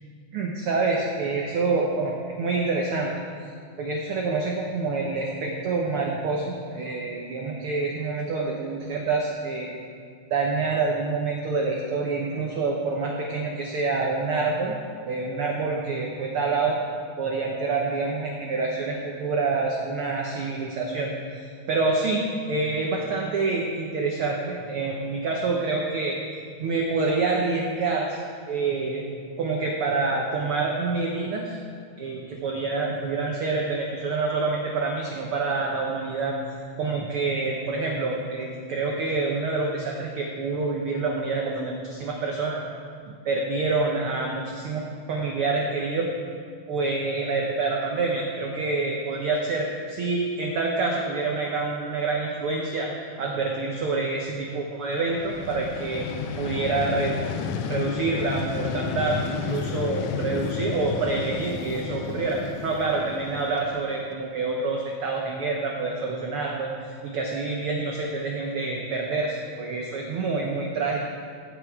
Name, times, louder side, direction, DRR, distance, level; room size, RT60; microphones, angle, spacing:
voice 1, 0.3-3.1 3.8-9.8 10.3-14.8 15.0-16.8 17.2-26.2 26.6-29.1 29.4-31.6 32.0-36.3 36.8-42.6 43.2-46.1 46.7-52.9 53.2-56.1 56.4-57.4 57.7-71.0, right 3 dB, 75° right, 0 dB, 1.2 m, -27 dB
Vehicle, 55.1-64.0, left 6 dB, 85° left, 2.2 m, -32 dB
16.0 x 5.8 x 4.7 m, 2.2 s
omnidirectional pair, 3.6 m